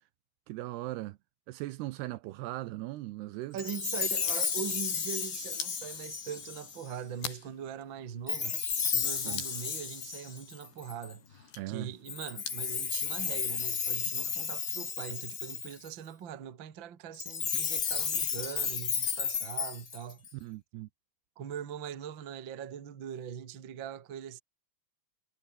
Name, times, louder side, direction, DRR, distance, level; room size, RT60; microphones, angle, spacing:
voice 1, 0.5-1.2 1.5-3.6 9.2-9.4 11.6-11.9 20.4-20.9, right 17 dB, 75° right, 2.7 m, -38 dB
voice 2, 3.5-8.6 8.9-20.2 21.3-24.4, right 8 dB, 45° right, 1.6 m, -41 dB
Chime, 3.6-6.9 8.3-11.1 12.1-15.9 17.1-20.3, left 6 dB, 85° left, 0.9 m, -33 dB
sound 1, 4.0-12.8, left 7 dB, 65° left, 6.5 m, -47 dB
omnidirectional pair, 5.1 m